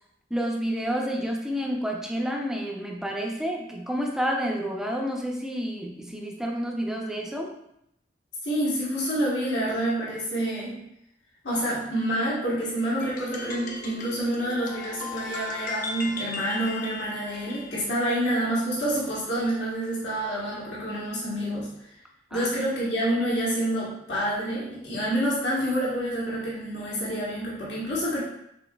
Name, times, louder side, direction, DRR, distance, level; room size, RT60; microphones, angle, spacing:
voice 1, 0.3-7.5 22.3-22.5, equal, 5° right, 0 dB, 0.5 m, -29 dB
voice 2, 8.4-10.8 11.4-21.7 22.3-28.2, right 1 dB, 70° left, -6 dB, 1.3 m, -28 dB
sound 1, 13.0-17.8, left 3 dB, 45° left, 0.6 m, -37 dB
6.2 x 3.7 x 2.3 m, 0.80 s
head